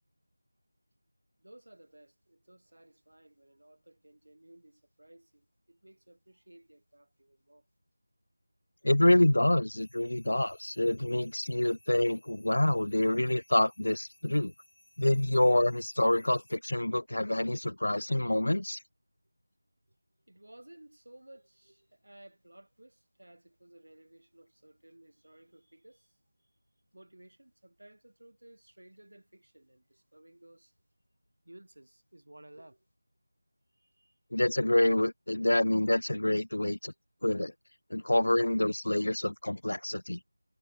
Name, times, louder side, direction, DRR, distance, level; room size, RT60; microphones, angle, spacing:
voice 1, 1.4-7.7 19.9-20.0 20.3-26.5 26.9-30.8 31.4-32.9 33.7-34.2, right 1 dB, 90° right, 7.4 m, -57 dB
voice 2, 8.8-14.5 15.0-18.8 34.3-36.9 37.2-37.5 37.9-40.2, left 1 dB, 90° left, 0.4 m, -27 dB
sound 1, 9.8-16.6, left 1 dB, 75° left, 4.5 m, -63 dB
figure-of-eight pair, 180°, 0 cm